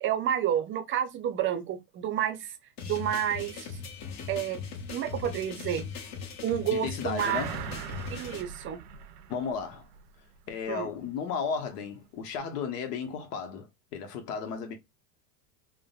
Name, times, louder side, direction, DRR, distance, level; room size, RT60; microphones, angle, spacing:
voice 1, 0.0-2.5 2.8-3.7 4.3-4.6 4.9-5.8 6.4-7.4 8.1-8.8 10.7-10.9, right 10 dB, 25° right, 0.5 m, -30 dB
sound 1, 2.8-8.4, left 6 dB, 35° left, 0.8 m, -39 dB
voice 2, 6.7-7.6 9.3-9.8 10.5-14.8, left 6 dB, 75° left, 1.0 m, -34 dB
sound 2, 7.2-10.1 10.5-10.6, right 9 dB, 85° right, 0.6 m, -40 dB
3.6 x 2.1 x 2.3 m
supercardioid pair, 115°, 46 cm